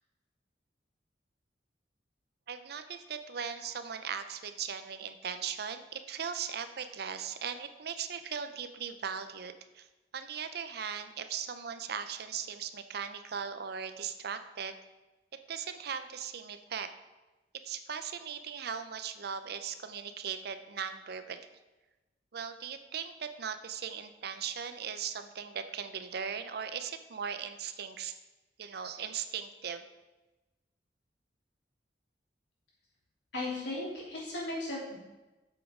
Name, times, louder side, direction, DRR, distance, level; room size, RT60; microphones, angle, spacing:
voice 1, 2.5-9.9 10.1-14.8 15.5-16.9 17.6-21.4 22.3-28.1 28.6-29.8, right 7 dB, 60° right, 10 dB, 0.5 m, -38 dB
voice 2, 33.3-34.9, left 2 dB, 75° left, -6 dB, 3.0 m, -36 dB
8.0 x 7.1 x 3.7 m, 1.1 s
head